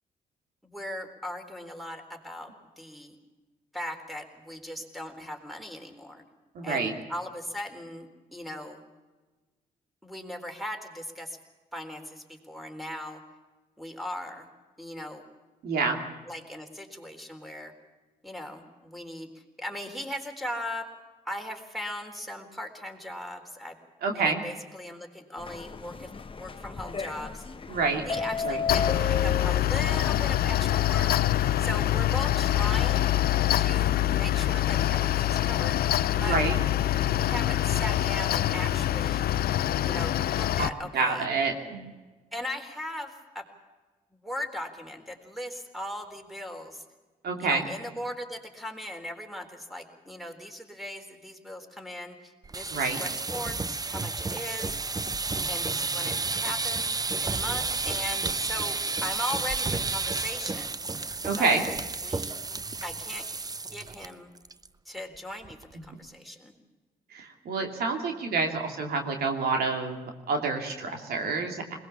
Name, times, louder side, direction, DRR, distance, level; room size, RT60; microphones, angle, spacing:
voice 1, 0.6-2.5 2.8-3.2 3.7-6.2 6.6-8.8 10.0-11.4 11.7-13.2 13.8-14.5 14.8-15.2 16.3-17.7 18.2-19.3 19.6-20.9 21.3-23.8 24.1-27.4 28.1-31.1 31.6-33.1 33.6-35.7 36.2-36.4 37.1-39.2 39.8-41.2 42.3-43.5 44.2-46.8 47.4-54.7 55.5-56.9 57.2-60.8 61.4-61.6 62.0-62.5 62.8-63.3 63.7-64.3 64.9-65.6 65.8-66.5, left 1 dB, ahead, 4 dB, 3.9 m, -38 dB
voice 2, 6.5-6.9 15.6-16.0 24.0-24.4 27.7-28.0 28.4-28.6 36.2-36.5 40.6-40.7 40.9-41.9 47.2-47.6 52.7-53.0 61.2-61.6 67.1-71.8, right 4 dB, 75° right, 3 dB, 2.7 m, -28 dB
sound 1, 25.4-30.4, left 5 dB, 35° left, 1.2 m, -34 dB
Mechanical fan, 28.7-40.7, left 13 dB, 70° left, 0.7 m, -25 dB
sound 2, 52.4-64.1 64.4-64.7 65.0-65.1 65.4-65.9, right 3 dB, 25° right, 0.7 m, -31 dB
21.0 x 19.5 x 7.2 m, 1.3 s
supercardioid pair, 60°, 16 cm